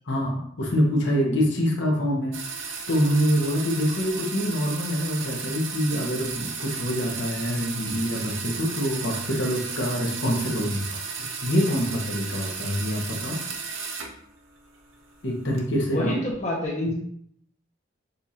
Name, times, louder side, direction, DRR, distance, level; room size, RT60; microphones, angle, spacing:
voice 1, 0.1-2.4 2.9-11.0 11.4-13.4 15.2-16.2, equal, 70° left, -1 dB, 1.0 m, -25 dB
sound 1, 2.3-14.2 14.6-15.6, right 5 dB, 80° right, 0.7 m, -34 dB
voice 2, 15.9-16.9, left 1 dB, 35° left, -3 dB, 0.8 m, -28 dB
6.7 x 2.5 x 2.8 m, 0.69 s
head